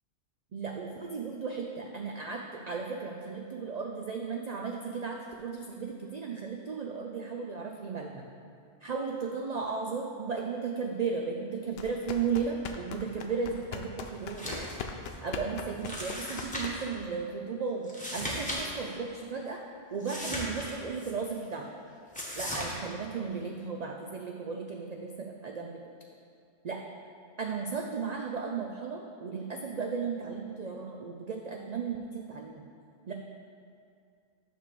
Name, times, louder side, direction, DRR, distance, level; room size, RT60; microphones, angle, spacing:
voice 1, 0.5-8.3 8.8-14.6 15.2-19.6 19.9-21.7 22.3-25.8 26.6-26.8 27.4-32.6 33.1-33.2, right 5 dB, 65° right, 1 dB, 0.4 m, -35 dB
sound 1, 11.7-17.1, left 5 dB, 60° left, 0.7 m, -41 dB
sound 2, 14.3-14.8 15.1-15.2 15.8-16.9 17.8-18.6 18.9-19.0 20.0-21.1 22.1-22.7, equal, 5° left, 1.1 m, -36 dB
8.8 x 3.4 x 6.7 m, 2.3 s
omnidirectional pair, 1.3 m